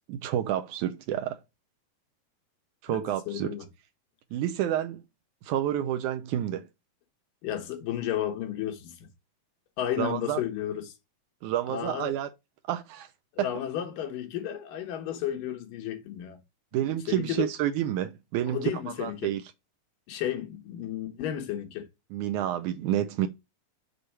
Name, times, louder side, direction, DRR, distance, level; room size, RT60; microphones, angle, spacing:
voice 1, 0.1-1.4 2.8-3.5 4.3-5.0 5.4-6.7 10.0-10.4 11.4-12.3 12.7-13.1 13.4-13.5 16.7-18.7 19.0-19.4 22.1-23.3, right 11 dB, 80° right, 1.9 m, -29 dB
voice 2, 3.3-3.7 7.4-9.1 9.8-10.9 11.7-12.1 13.3-16.4 17.1-17.5 18.5-19.3 20.1-21.9, left 11 dB, 80° left, 2.9 m, -33 dB
6.8 x 3.9 x 4.6 m
omnidirectional pair, 3.9 m